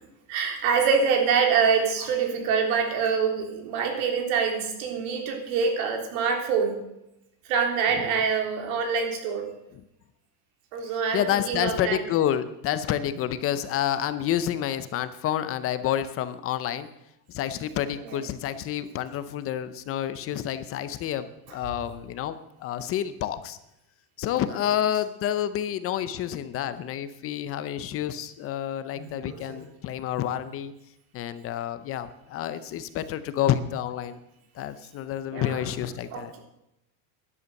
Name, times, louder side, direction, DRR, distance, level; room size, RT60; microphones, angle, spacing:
voice 1, 0.3-6.8 7.5-9.5 10.7-12.0 18.1-18.2 28.9-29.6 35.3-35.6 36.1-36.4, right 6 dB, 75° right, 4 dB, 3.6 m, -25 dB
voice 2, 11.1-16.9 17.3-23.6 24.2-30.7 31.1-34.2 34.5-36.3, left 11 dB, 30° left, 12 dB, 0.6 m, -29 dB
12.5 x 11.0 x 6.5 m, 0.86 s
cardioid pair, 170°, 43 cm